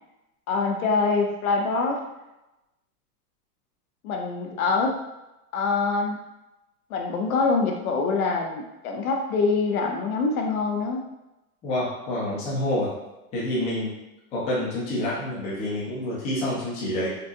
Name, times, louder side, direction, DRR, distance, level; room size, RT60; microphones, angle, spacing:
voice 1, 0.5-2.0 4.0-5.0 5.5-6.2 6.9-11.0, left 4 dB, 65° left, 2 dB, 0.6 m, -24 dB
voice 2, 11.6-12.9 13.3-13.9 14.3-17.1, left 1 dB, 15° left, -8 dB, 0.6 m, -27 dB
3.9 x 2.3 x 2.6 m, 0.97 s
supercardioid pair, 160°, 46 cm